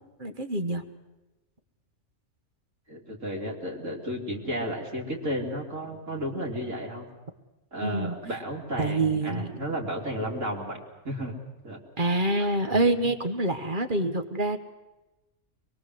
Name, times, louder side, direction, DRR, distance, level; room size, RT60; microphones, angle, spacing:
voice 1, 0.2-0.8 7.8-8.2 8.8-9.5 12.0-14.6, right 2 dB, 35° right, 7 dB, 1.5 m, -26 dB
voice 2, 2.9-7.1 7.7-11.3 11.6-11.8 12.4-12.5, equal, 60° right, -1 dB, 3.5 m, -33 dB
24.0 x 22.0 x 7.9 m, 1.0 s
omnidirectional pair, 1.5 m